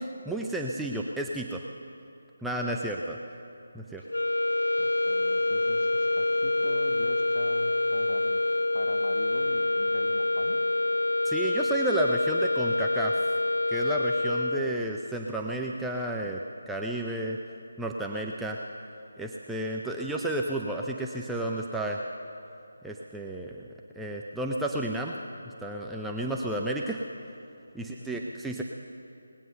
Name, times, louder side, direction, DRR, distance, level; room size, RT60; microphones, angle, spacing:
voice 1, 0.0-1.6 2.4-3.2 3.7-4.0 11.2-13.1 13.7-16.4 16.7-17.4 17.8-18.6 19.2-22.0 22.8-23.7 24.0-25.2 25.6-27.0 27.7-28.6, right 1 dB, 5° right, -1 dB, 0.5 m, -32 dB
sound 1, 4.1-15.0, left 2 dB, 80° left, 0.5 m, -26 dB
voice 2, 4.8-8.4 8.7-10.6 27.8-28.2, left 3 dB, 40° left, 3 dB, 1.3 m, -42 dB
19.5 x 9.2 x 6.7 m, 2.7 s
figure-of-eight pair, 160°, 0 cm